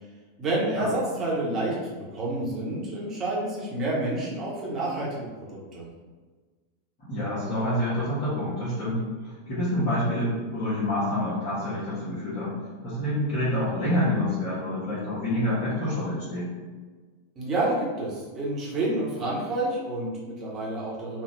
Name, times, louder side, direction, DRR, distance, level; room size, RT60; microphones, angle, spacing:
voice 1, 0.4-5.2 5.7-5.8 17.3-21.2, right 2 dB, 30° right, -6 dB, 1.2 m, -29 dB
voice 2, 7.0-9.0 9.5-12.5 12.8-16.5, left 1 dB, 40° left, -12 dB, 1.3 m, -27 dB
3.2 x 2.4 x 3.2 m, 1.4 s
figure-of-eight pair, 90°, 0 cm